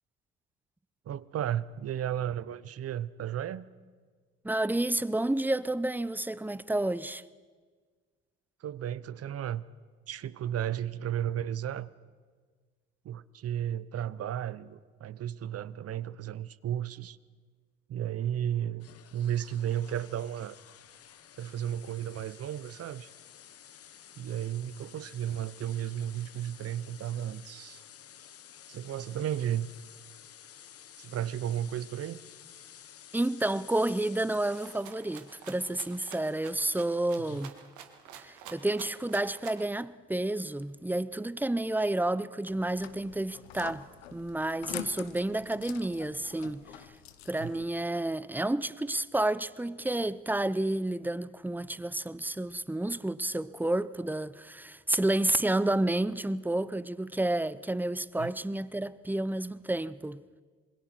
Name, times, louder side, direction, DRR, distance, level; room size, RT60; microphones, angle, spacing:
voice 1, 1.1-3.7 8.6-9.6 10.1-11.9 13.0-17.2 17.9-20.6 21.4-23.1 24.2-27.8 28.7-29.7 31.0-32.2 37.3-37.4 47.4-47.6 58.2-58.3, right 10 dB, 50° right, 0.8 m, -34 dB
voice 2, 4.4-7.2 33.1-37.6 38.1-46.9 47.3-60.2, right 1 dB, 5° right, 0.7 m, -30 dB
sound 1, 18.8-37.5, left 9 dB, 50° left, 1.1 m, -53 dB
Rattle (instrument), 34.5-39.7, right 9 dB, 70° right, 1.9 m, -49 dB
sound 2, 42.5-47.6, left 11 dB, 90° left, 0.9 m, -45 dB
27.0 x 21.5 x 4.6 m
hypercardioid pair, 55°, 31 cm